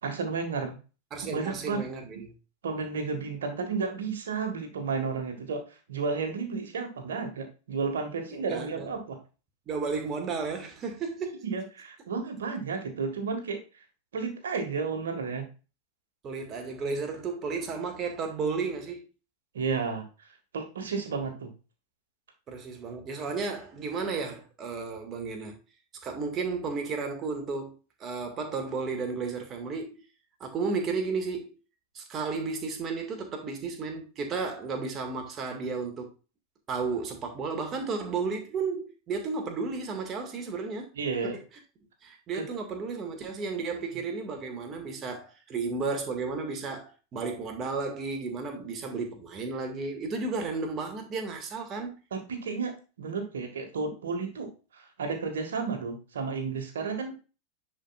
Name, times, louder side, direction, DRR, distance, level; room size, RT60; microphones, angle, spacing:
voice 1, 0.0-0.8 1.2-1.8 2.6-5.6 5.9-9.2 11.4-13.6 14.1-15.5 19.5-20.0 20.5-21.5 41.0-41.4 42.3-42.4 43.7-43.8 52.1-52.7 53.0-57.2, right 4 dB, 65° right, 1.9 m, -32 dB
voice 2, 1.1-2.3 8.3-8.9 9.7-11.4 16.2-19.1 22.5-25.6 26.0-27.7 28.0-30.0 30.4-31.5 31.9-36.1 36.7-40.9 41.2-41.4 42.0-51.9, right 4 dB, 30° right, 2.1 m, -33 dB
10.0 x 5.1 x 2.5 m
figure-of-eight pair, 90°, 0 cm